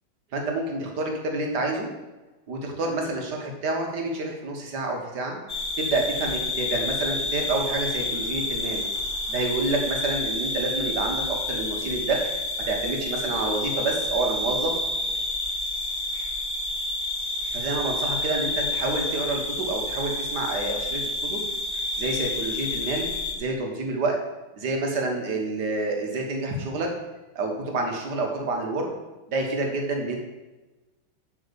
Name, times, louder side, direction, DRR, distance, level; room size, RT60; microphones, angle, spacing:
voice 1, 0.3-1.9 2.5-5.4 5.8-8.9 9.3-12.3 12.7-14.8 17.5-21.0 21.3-21.4 21.7-23.1 23.4-24.2 24.6-26.9 27.4-28.9 29.3-30.2, right 2 dB, 60° right, 2 dB, 1.9 m, -28 dB
sound 1, 5.5-23.3, left 2 dB, 30° left, 0.9 m, -29 dB
7.9 x 4.3 x 6.9 m, 1.1 s
omnidirectional pair, 2.2 m